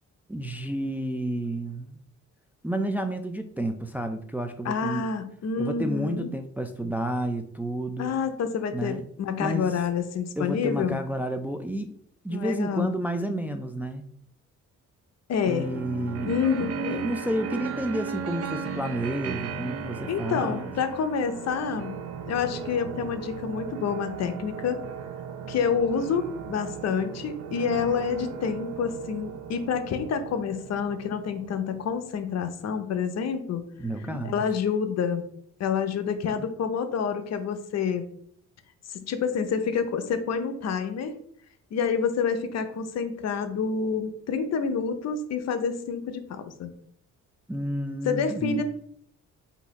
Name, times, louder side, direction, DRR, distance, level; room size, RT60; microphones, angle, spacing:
voice 1, 0.3-2.0 2.6-5.1 5.6-8.2 8.7-9.0 9.4-9.8 10.4-11.9 12.2-14.1 15.4-16.3 16.9-20.7 33.8-34.4 47.5-48.6, right 1 dB, 5° right, 6 dB, 0.3 m, -30 dB
voice 2, 4.6-6.3 8.0-11.0 12.3-12.9 15.3-15.7 16.3-17.0 20.1-24.8 25.5-33.6 34.0-35.2 35.6-38.0 38.9-41.1 41.7-46.7 48.0-48.6, left 6 dB, 60° left, 8 dB, 0.7 m, -28 dB
sound 1, 15.4-32.0, right 7 dB, 55° right, 0.6 m, -37 dB
4.0 x 2.7 x 4.7 m, 0.64 s
cardioid pair, 90°, 30 cm